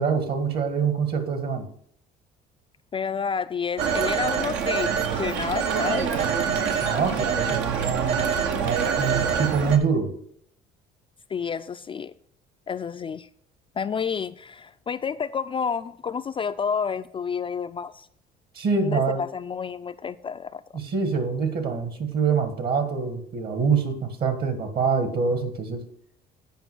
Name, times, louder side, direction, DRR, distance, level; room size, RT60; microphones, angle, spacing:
voice 1, 0.0-1.7 6.8-8.3 8.6-10.1 18.5-19.2 20.7-25.8, right 5 dB, 55° right, 8 dB, 1.6 m, -25 dB
voice 2, 2.9-6.4 11.3-12.1 12.7-13.3 13.8-18.1 18.8-20.6, left 6 dB, 30° left, 10 dB, 0.3 m, -30 dB
Telephone, 3.8-9.8, right 6 dB, 80° right, 1.1 m, -25 dB
9.1 x 4.7 x 6.1 m, 0.67 s
supercardioid pair, 90°, 19 cm